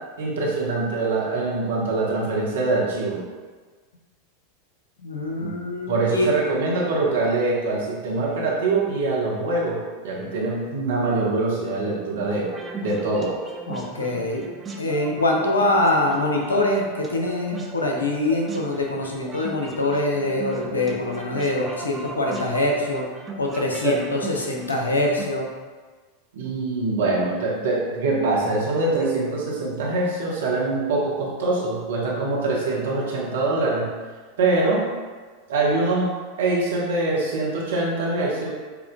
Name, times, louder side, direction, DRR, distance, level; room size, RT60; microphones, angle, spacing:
voice 1, 0.2-3.2 5.4-5.6 5.9-12.5 12.8-13.3 23.8-24.0 26.3-33.9 34.4-34.9 35.5-36.1 36.4-38.5, right 3 dB, 65° right, -4 dB, 1.1 m, -24 dB
voice 2, 5.0-6.3 13.7-14.5 14.8-23.1 23.4-25.5, left 2 dB, 80° left, 0 dB, 0.6 m, -24 dB
sound 1, 12.5-25.2, right 3 dB, 20° right, 0.6 m, -38 dB
6.9 x 2.6 x 2.2 m, 1.4 s
figure-of-eight pair, 85°, 0 cm